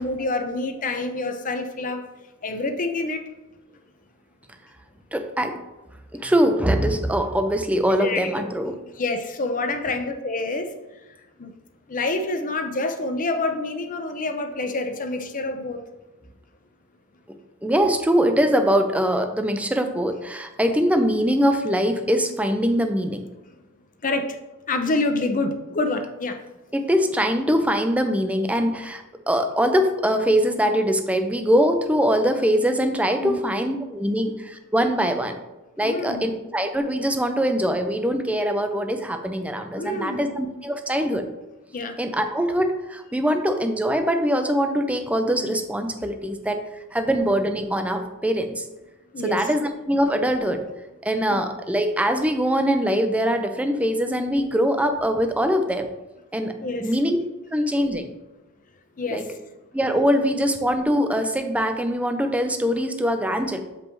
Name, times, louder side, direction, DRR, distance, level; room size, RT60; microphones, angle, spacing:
voice 1, 0.0-2.0 2.4-3.2 8.0-8.2 9.0-10.7 11.4-11.5 11.9-15.8 24.0-24.4 24.7-26.4 33.2-33.4 35.8-36.2 39.8-40.3 41.7-41.9 49.1-49.5 56.6-56.9 59.0-59.3, left 2 dB, 40° left, 6 dB, 0.6 m, -27 dB
voice 2, 5.1-5.6 6.2-8.8 17.6-23.3 26.7-35.4 35.8-41.2 42.0-46.6 46.9-48.6 49.2-50.6 51.0-55.9 56.3-56.5 56.8-57.2 57.5-58.1 59.1-59.3 59.7-63.6, equal, 5° right, 6 dB, 0.5 m, -22 dB
7.3 x 5.3 x 3.1 m, 1.1 s
head